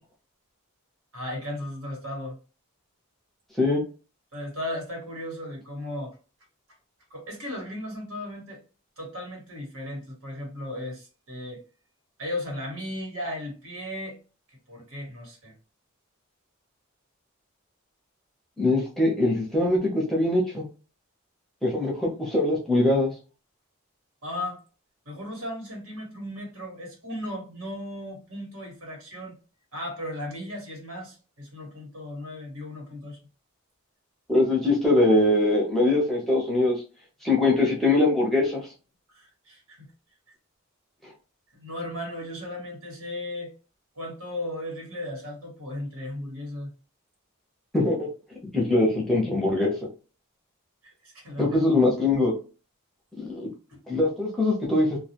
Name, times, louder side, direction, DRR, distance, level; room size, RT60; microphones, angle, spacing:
voice 1, 1.1-2.4 4.3-6.2 7.1-8.6 9.0-11.6 12.2-14.2 14.7-15.5 24.2-24.6 25.0-29.3 29.7-33.2 39.1-39.9 41.5-43.5 44.0-46.7 50.8-51.6 53.7-53.8, left 1 dB, 80° right, 1 dB, 1.3 m, -36 dB
voice 2, 18.6-20.6 21.6-23.1 34.3-36.8 37.2-38.6 47.7-48.1 48.5-49.7 51.4-52.3 53.2-53.5 53.9-55.0, left 2 dB, ahead, -3 dB, 0.7 m, -22 dB
2.3 x 2.3 x 2.8 m, 0.34 s
head